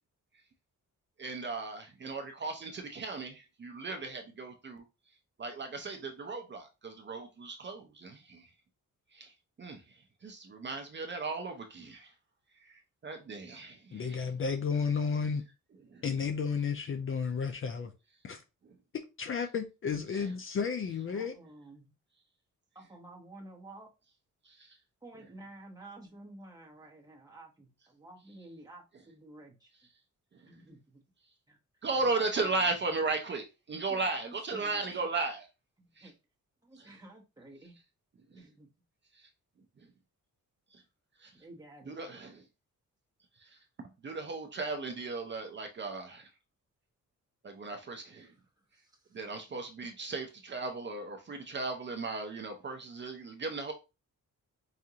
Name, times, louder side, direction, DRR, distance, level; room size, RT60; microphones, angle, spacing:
voice 1, 1.2-4.8 5.4-8.4 9.1-9.3 9.6-9.8 10.2-12.1 12.7-14.3 15.9-16.0 20.1-20.3 24.5-24.7 31.8-35.4 36.0-36.1 36.8-36.9 40.7-40.8 41.2-41.3 41.9-42.4 43.4-43.5 43.8-46.3 47.4-48.3 49.1-53.7, right 3 dB, 35° right, 0.6 m, -36 dB
voice 2, 13.9-15.4 16.0-17.9 18.2-18.4 19.2-21.3, left 5 dB, 40° left, 0.4 m, -32 dB
voice 3, 21.1-21.9 22.7-23.9 25.0-29.7 30.5-31.0 31.5-31.6 32.0-32.7 33.9-35.1 35.8-36.1 36.6-37.8 38.3-38.7 41.3-42.2 48.7-49.2, right 2 dB, 10° right, 1.0 m, -51 dB
4.8 x 2.4 x 2.8 m
wide cardioid pair, 170°, 32 cm